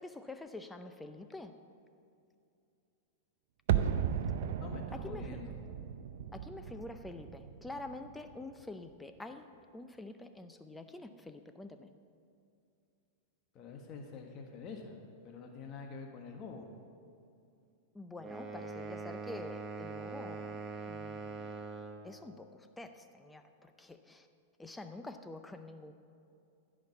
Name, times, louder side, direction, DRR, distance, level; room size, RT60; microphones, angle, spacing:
voice 1, 0.0-1.5 4.9-5.4 6.3-11.9 17.9-20.6 20.9-21.5 22.0-24.3 24.6-25.9, left 2 dB, 10° left, 8 dB, 0.5 m, -47 dB
sound 1, 3.7-8.6 8.9-9.0, right 9 dB, 70° right, 0.6 m, -35 dB
voice 2, 4.6-5.6 13.5-16.7, left 4 dB, 40° left, 2 dB, 1.3 m, -46 dB
sound 2, 18.2-22.1, right 4 dB, 25° right, 1.1 m, -43 dB
15.0 x 5.1 x 7.1 m, 2.6 s
hypercardioid pair, 120°, 0 cm